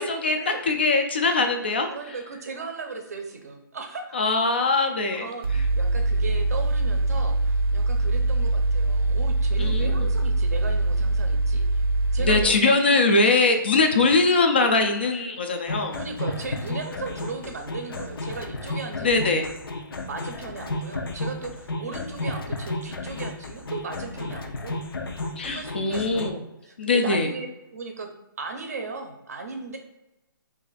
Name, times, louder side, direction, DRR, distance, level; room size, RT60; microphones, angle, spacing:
voice 1, 0.0-1.9 4.1-5.3 5.5-5.7 9.6-10.1 12.2-16.0 19.0-19.5 25.4-26.4 26.8-27.3, left 3 dB, 30° left, 5 dB, 0.3 m, -22 dB
voice 2, 1.9-4.2 5.2-11.6 12.1-13.0 15.9-19.4 20.0-24.8 25.4-28.1 28.4-29.8, right 4 dB, 45° right, 4 dB, 0.6 m, -36 dB
Mechanical fan, 5.4-12.4, right 2 dB, 90° right, 0.5 m, -23 dB
sound 1, 15.7-26.3, left 2 dB, 85° left, 0.6 m, -33 dB
3.1 x 2.5 x 3.9 m, 0.96 s
hypercardioid pair, 175°, 12 cm